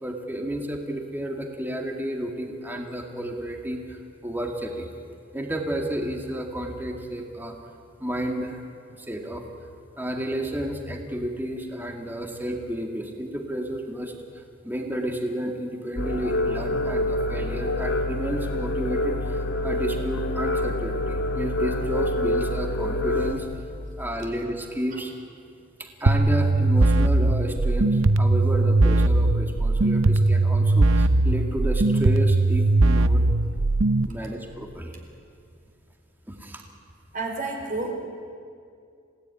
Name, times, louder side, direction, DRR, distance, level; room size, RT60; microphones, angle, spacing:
voice 1, 0.0-4.9 5.3-7.6 8.0-8.6 9.0-9.4 10.0-23.7 24.0-25.1 25.8-33.2 34.0-35.0 36.3-36.6, right 1 dB, 10° right, 2 dB, 2.1 m, -31 dB
sound 1, 16.0-23.3, left 1 dB, 55° left, 2.1 m, -26 dB
sound 2, 26.1-34.1, right 2 dB, 70° right, 0.8 m, -20 dB
voice 2, 37.1-37.9, right 3 dB, 40° right, 1 dB, 4.6 m, -30 dB
28.5 x 17.5 x 9.9 m, 2.3 s
head